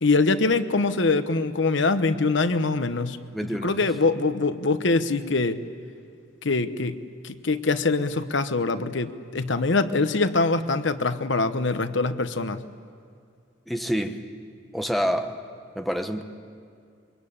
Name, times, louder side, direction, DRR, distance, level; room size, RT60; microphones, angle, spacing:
voice 1, 0.0-3.2 3.6-5.6 6.4-7.0 7.2-12.6, left 3 dB, 70° left, 11 dB, 1.0 m, -23 dB
voice 2, 3.3-3.9 13.7-14.2 14.7-15.4 15.7-16.2, equal, ahead, 5 dB, 1.1 m, -27 dB
27.0 x 23.5 x 8.7 m, 2.3 s
head